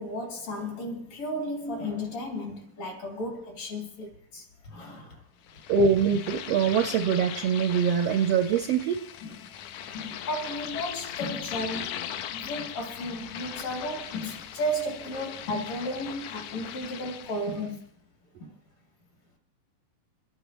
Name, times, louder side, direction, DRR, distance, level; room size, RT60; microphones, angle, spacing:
voice 1, 0.0-5.2 9.2-9.4 9.8-17.8 18.4-18.6, equal, 55° left, 3.8 m, -34 dB
sound 1, 5.5-17.7, left 10 dB, 75° left, 1.8 m, -39 dB
voice 2, 5.7-9.0, right 6 dB, 80° right, 1.5 m, -23 dB
29.5 x 9.9 x 3.0 m
omnidirectional pair, 3.7 m